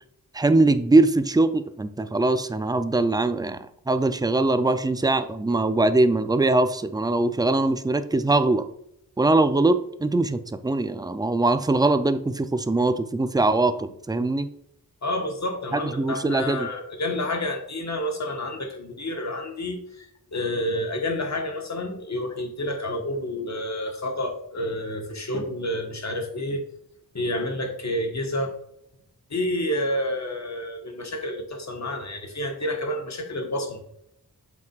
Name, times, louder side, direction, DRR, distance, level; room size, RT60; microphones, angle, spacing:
voice 1, 0.3-8.6 9.2-14.5 15.7-16.7, right 2 dB, 10° right, 10 dB, 0.4 m, -22 dB
voice 2, 15.0-20.1 20.3-26.6 27.1-28.5 29.3-33.8, left 1 dB, 50° left, 3 dB, 1.3 m, -29 dB
7.6 x 5.9 x 2.4 m, 0.74 s
wide cardioid pair, 110°, 36 cm